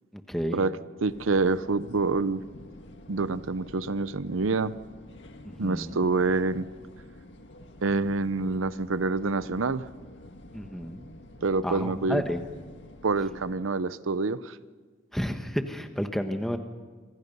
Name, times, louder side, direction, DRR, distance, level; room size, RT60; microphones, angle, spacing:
voice 1, 0.1-0.6 5.4-6.0 10.5-11.1 11.6-12.4 15.1-16.6, equal, ahead, 6 dB, 1.3 m, -31 dB
sound 1, 1.0-13.5, left 1 dB, 60° left, 1.9 m, -48 dB
voice 2, 1.0-2.4 3.1-4.7 5.6-6.7 7.8-9.9 11.4-12.2 13.0-14.6, right 3 dB, 85° right, 15 dB, 0.7 m, -27 dB
26.5 x 25.5 x 5.5 m, 1.5 s
head